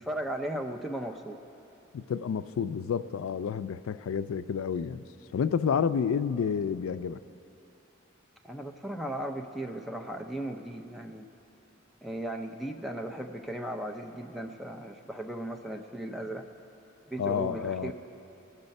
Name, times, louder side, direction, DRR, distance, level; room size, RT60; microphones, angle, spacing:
voice 1, 0.0-1.4 8.4-11.3 12.0-16.4 17.1-17.9, right 1 dB, ahead, 3 dB, 0.5 m, -36 dB
voice 2, 1.9-5.0 5.3-7.2 17.2-17.9, left 7 dB, 90° left, 14 dB, 0.3 m, -30 dB
19.0 x 6.5 x 5.3 m, 2.9 s
head